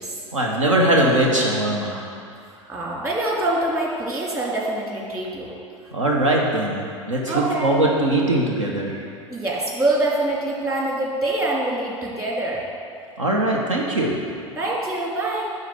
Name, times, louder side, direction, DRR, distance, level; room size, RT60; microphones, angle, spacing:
voice 1, 0.3-2.0 5.9-6.8 7.1-9.0 13.2-14.2, right 1 dB, 80° right, -1 dB, 1.0 m, -20 dB
voice 2, 2.7-5.5 7.3-7.8 9.3-12.7 14.5-15.5, right 2 dB, 20° right, -3 dB, 2.4 m, -25 dB
10.5 x 4.0 x 7.7 m, 2.3 s
figure-of-eight pair, 80°, 16 cm